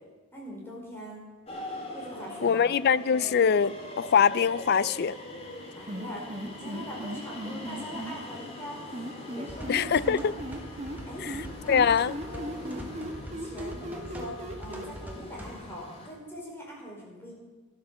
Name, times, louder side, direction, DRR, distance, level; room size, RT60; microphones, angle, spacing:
voice 1, 0.3-1.2 1.9-2.6 5.8-8.8 9.3-9.9 10.2-10.4 11.1-11.3 11.6-12.0 12.2-12.9 13.3-17.3, equal, 10° left, 4.7 m, -42 dB
sound 1, 1.5-16.1, left 1 dB, 25° left, 2.3 m, -43 dB
voice 2, 2.4-5.2 9.7-10.3 11.2-11.4 11.7-12.2, left 7 dB, 45° left, 0.4 m, -23 dB
sound 2, 5.9-8.2 8.9-11.0 11.3-14.9, right 1 dB, 30° right, 1.3 m, -37 dB
sound 3, 9.5-15.5, equal, 5° right, 1.6 m, -43 dB
13.5 x 11.5 x 6.8 m
head